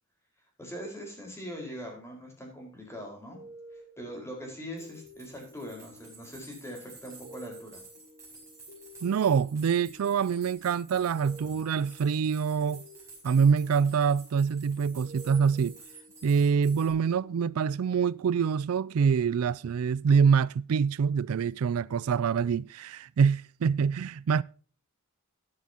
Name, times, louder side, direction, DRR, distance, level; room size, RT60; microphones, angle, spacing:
voice 1, 0.6-3.4 3.7-7.8 11.4-11.6, equal, 10° left, 4.7 m, -42 dB
sound 1, 3.3-19.7, equal, 75° left, 5.8 m, -53 dB
sound 2, 4.8-16.9, right 3 dB, 15° right, 5.9 m, -52 dB
voice 2, 9.0-12.8 13.2-15.7 16.2-24.4, right 6 dB, 75° right, 0.4 m, -25 dB
13.5 x 10.5 x 2.9 m
head